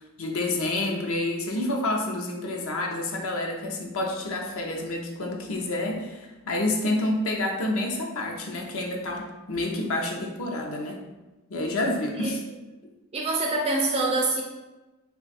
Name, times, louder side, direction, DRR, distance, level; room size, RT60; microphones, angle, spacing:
voice 1, 0.2-11.0 11.5-12.4, left 2 dB, 70° left, 1 dB, 0.6 m, -28 dB
voice 2, 13.1-14.4, right 2 dB, 30° right, 0 dB, 0.3 m, -25 dB
3.3 x 2.3 x 3.9 m, 1.1 s
head